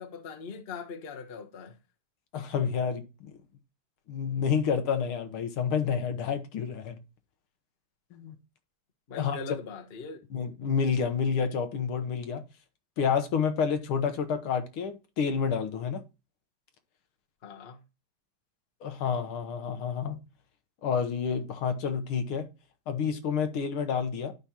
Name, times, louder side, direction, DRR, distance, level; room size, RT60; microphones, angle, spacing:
voice 1, 0.0-1.8 9.1-10.2 17.4-17.8, left 5 dB, 40° left, 1.0 m, -41 dB
voice 2, 2.3-3.3 4.1-7.0 8.1-8.4 9.2-9.4 10.3-12.4 13.0-16.0 18.8-20.2 20.8-22.5 22.9-24.3, left 6 dB, 75° left, 1.9 m, -29 dB
11.5 x 5.3 x 2.8 m
omnidirectional pair, 2.4 m